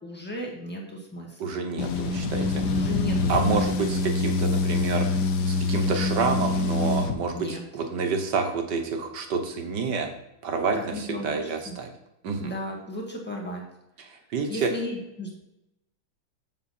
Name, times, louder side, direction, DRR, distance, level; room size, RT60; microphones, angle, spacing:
voice 1, 0.0-1.6 2.7-3.6 7.3-7.6 10.7-11.4 11.6-11.8 12.4-13.6 14.5-15.3, left 1 dB, 5° left, -1 dB, 1.5 m, -35 dB
voice 2, 1.4-2.8 3.3-10.1 10.4-11.9 12.2-12.5 14.0-14.7, right 4 dB, 60° right, 5 dB, 1.6 m, -29 dB
sound 1, 1.8-7.1, left 3 dB, 65° left, 1.3 m, -25 dB
7.3 x 7.2 x 4.3 m, 0.91 s
omnidirectional pair, 2.2 m